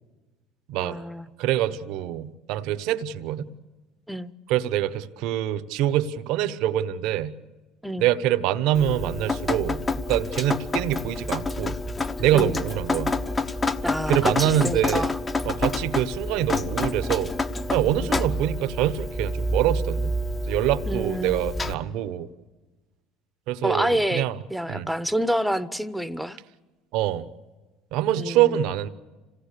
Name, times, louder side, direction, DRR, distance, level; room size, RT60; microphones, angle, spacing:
voice 1, 0.8-1.3 4.1-4.3 7.8-8.1 12.3-12.6 13.8-15.2 18.0-18.1 20.9-21.4 23.6-26.4 28.1-28.6, equal, ahead, 13 dB, 1.1 m, -28 dB
voice 2, 1.4-3.5 4.5-7.3 8.0-11.7 12.2-13.1 14.1-15.0 15.4-17.3 17.7-20.1 20.5-22.3 23.5-24.4 24.7-24.9 26.9-27.2 27.9-28.9, right 12 dB, 70° right, 14 dB, 1.1 m, -25 dB
Drip, 8.7-21.7, left 2 dB, 25° left, 1.3 m, -28 dB
26.5 x 18.0 x 6.8 m, 1.2 s
hypercardioid pair, 80°, 0 cm